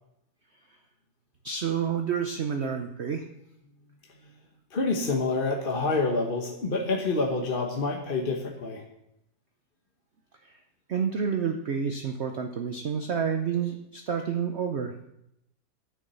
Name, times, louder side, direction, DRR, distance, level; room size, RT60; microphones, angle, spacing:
voice 1, 1.4-3.2 10.9-14.9, right 7 dB, 50° right, 5 dB, 0.8 m, -29 dB
voice 2, 4.7-8.8, left 3 dB, 35° left, 1 dB, 1.2 m, -27 dB
10.5 x 7.0 x 6.8 m, 0.82 s
omnidirectional pair, 1.9 m